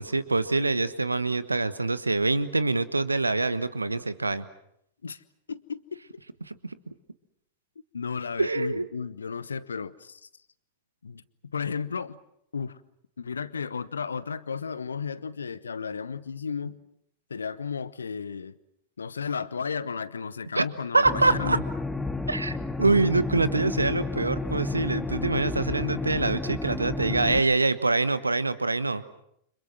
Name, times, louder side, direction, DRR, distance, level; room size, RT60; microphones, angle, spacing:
voice 1, 0.0-4.4 6.5-6.6 8.4-8.8 20.5-20.7 20.9-21.6 22.3-29.0, right 3 dB, 80° right, 15 dB, 1.2 m, -25 dB
voice 2, 5.5-6.0 7.9-10.3 11.0-11.2 11.5-12.2 12.5-12.8 13.2-16.8 17.3-18.6 19.0-21.6, left 6 dB, 75° left, 17 dB, 1.1 m, -33 dB
sound 1, 21.0-27.4, left 3 dB, 5° left, 2.0 m, -31 dB
30.0 x 26.5 x 6.2 m, 0.75 s
figure-of-eight pair, 90°, 0 cm